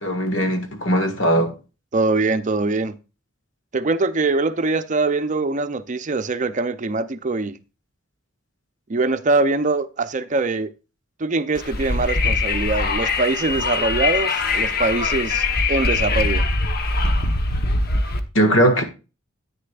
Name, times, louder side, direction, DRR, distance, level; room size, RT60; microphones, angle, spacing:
voice 1, 0.0-1.6 18.3-18.8, right 1 dB, 75° left, 1.7 m, -19 dB
voice 2, 1.9-3.0 3.7-7.6 8.9-10.7 11.2-16.4, right 3 dB, 40° right, 0.6 m, -23 dB
Wind, 11.5-18.2, left 3 dB, 50° left, 1.0 m, -22 dB
10.0 x 9.2 x 2.4 m
head